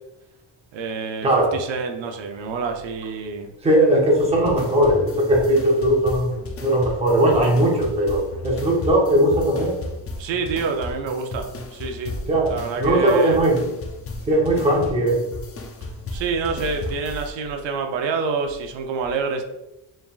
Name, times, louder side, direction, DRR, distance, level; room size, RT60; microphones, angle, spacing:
voice 1, 0.7-3.5 10.2-12.2 12.5-13.4 16.1-19.4, right 5 dB, 90° right, 4 dB, 0.7 m, -27 dB
voice 2, 1.2-1.6 3.6-6.3 6.6-9.8 12.3-13.7 14.3-15.2, right 1 dB, 15° right, -2 dB, 0.7 m, -19 dB
sound 1, 4.2-17.3, left 2 dB, 35° left, 0.4 m, -34 dB
4.6 x 3.5 x 2.4 m, 0.98 s
cardioid pair, 175°, 43 cm